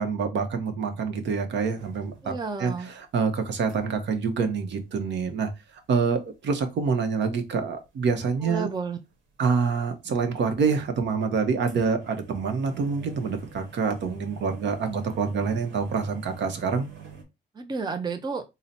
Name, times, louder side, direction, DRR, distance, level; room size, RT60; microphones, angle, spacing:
voice 1, 0.0-2.3 2.6-5.5 5.9-8.7 9.4-16.9, right 5 dB, 65° right, 0.8 m, -26 dB
sound 1, 1.8-2.7 3.0-4.1 4.4-4.5 4.8-5.3 5.8-7.4 7.7-8.5 9.1-9.8 10.2-17.2, right 5 dB, 85° right, 1.0 m, -46 dB
voice 2, 2.2-2.9 8.4-9.0 17.6-18.4, right 4 dB, 20° right, 0.5 m, -31 dB
3.8 x 2.1 x 4.0 m
cardioid pair, 90°, 20 cm